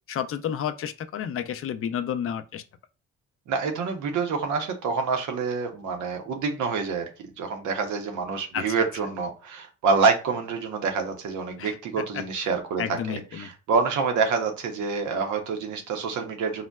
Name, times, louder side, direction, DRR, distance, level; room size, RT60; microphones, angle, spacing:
voice 1, 0.1-2.6 8.5-8.9 11.6-12.2 12.8-13.5, left 9 dB, 50° left, 0.4 m, -31 dB
voice 2, 3.5-7.1 7.4-13.0 13.4-16.6, right 5 dB, 75° right, 0.7 m, -27 dB
3.8 x 2.1 x 2.2 m
cardioid pair, 90°, 30 cm